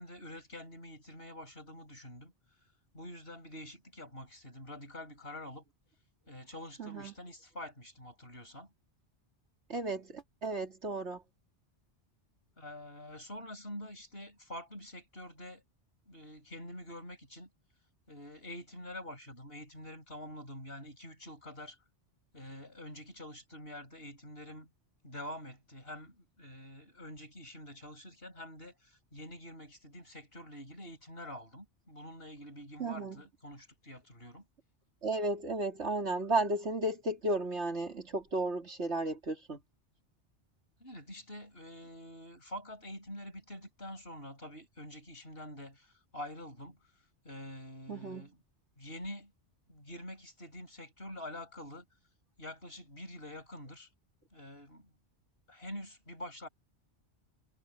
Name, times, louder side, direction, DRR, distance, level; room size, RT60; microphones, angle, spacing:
voice 1, 0.0-2.3 2.9-5.6 6.3-8.7 12.6-15.6 16.1-17.5 18.1-21.8 22.3-24.7 25.0-34.5 40.8-46.8 47.2-48.4 48.8-49.3 49.7-51.8 52.4-53.9 54.3-54.9 55.5-56.5, left 1 dB, 60° left, 8.1 m, -46 dB
voice 2, 6.8-7.1 9.7-11.2 32.8-33.2 35.0-39.6 47.9-48.3, right 2 dB, 80° right, 2.9 m, -34 dB
omnidirectional pair, 1.2 m